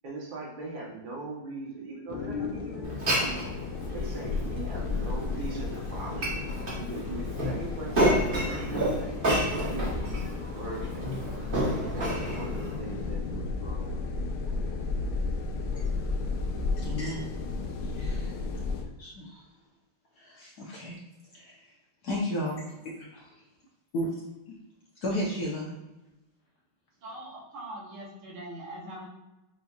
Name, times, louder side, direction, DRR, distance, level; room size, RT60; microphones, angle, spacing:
voice 1, 0.0-3.4 3.9-6.4 6.8-9.1 9.5-11.2 11.8-14.0 14.5-14.7 15.2-15.3, right 3 dB, 60° right, -3 dB, 0.5 m, -40 dB
sound 1, 2.1-18.8, left 3 dB, 80° left, 1.5 m, -33 dB
Glass, 2.8-12.8, right 1 dB, 30° right, 1.0 m, -31 dB
voice 2, 16.8-17.3 17.6-17.7 17.9-18.3 19.0-19.4 20.2-21.0 21.3-21.6 22.0-22.6 23.1-23.2 23.9-24.1 25.0-25.7, equal, 65° left, -3 dB, 1.0 m, -33 dB
voice 3, 27.0-29.1, right 1 dB, 80° right, -4 dB, 2.1 m, -42 dB
6.6 x 2.8 x 2.3 m, 1.0 s
omnidirectional pair, 2.3 m